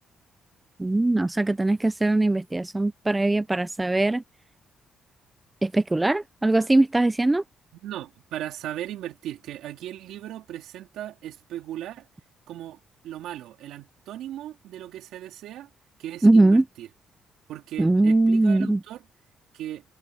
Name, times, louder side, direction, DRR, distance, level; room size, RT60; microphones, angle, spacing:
voice 1, 0.8-4.2 5.6-7.4 16.2-16.6 17.8-18.8, right 2 dB, 15° right, 0.8 m, -21 dB
voice 2, 7.8-12.1 12.5-12.8 13.0-15.7 16.0-16.9 17.5-19.0 19.5-19.8, right 12 dB, 85° right, 3.6 m, -37 dB
cardioid pair, 90°, 0 cm